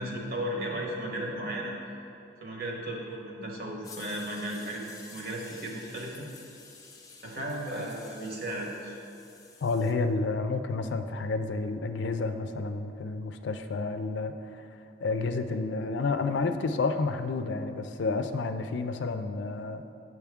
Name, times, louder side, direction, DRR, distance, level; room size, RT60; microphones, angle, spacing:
voice 1, 0.0-1.7 2.4-6.3 7.2-9.0, right 1 dB, 55° right, -1 dB, 1.1 m, -35 dB
sound 1, 3.8-9.9, left 4 dB, 20° left, 0.5 m, -51 dB
voice 2, 9.6-14.6 15.0-19.8, left 3 dB, 80° left, 8 dB, 0.4 m, -30 dB
8.4 x 6.2 x 3.5 m, 2.6 s
head